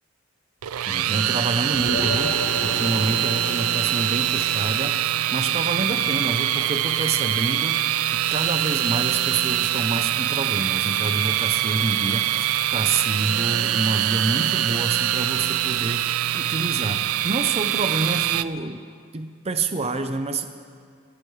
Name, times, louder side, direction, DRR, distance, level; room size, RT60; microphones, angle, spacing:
sound 1, 0.6-18.4, right 12 dB, 90° right, 0.4 m, -24 dB
voice 1, 0.9-2.3 2.6-18.8 19.1-20.5, right 3 dB, 30° right, 7 dB, 0.6 m, -28 dB
sound 2, 1.7-6.5, left 1 dB, 70° left, 2.3 m, -33 dB
22.5 x 15.5 x 3.2 m, 2.2 s
head